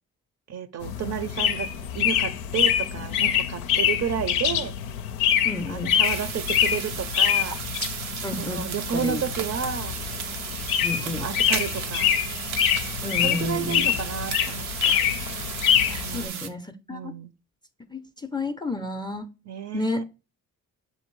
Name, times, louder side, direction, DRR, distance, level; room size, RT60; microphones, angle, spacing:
voice 1, 0.5-1.7 1.9-4.7 5.7-7.6 8.4-10.0 11.0-12.1 13.2-15.1 16.0-16.5 16.9-17.3 19.5-20.0, right 7 dB, 40° right, 0.5 m, -31 dB
sound 1, 0.8-16.3, left 9 dB, 90° left, 0.5 m, -25 dB
voice 2, 5.4-6.0 8.2-8.6 8.9-9.2 10.8-11.3 13.0-13.9 15.9-17.1 17.9-19.3 19.7-20.0, left 2 dB, 10° left, 0.4 m, -31 dB
sound 2, 6.0-16.5, right 8 dB, 90° right, 0.6 m, -34 dB
6.4 x 2.7 x 3.1 m
hypercardioid pair, 45°, 41 cm